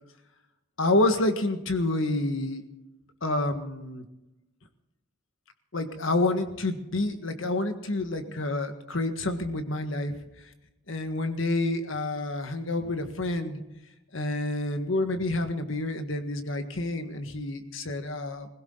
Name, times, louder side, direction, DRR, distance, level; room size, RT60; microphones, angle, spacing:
voice 1, 0.8-2.6 3.2-4.0 5.7-10.1 10.9-13.6 14.1-18.5, left 2 dB, 70° left, 7 dB, 1.6 m, -28 dB
21.5 x 16.5 x 3.9 m, 0.92 s
head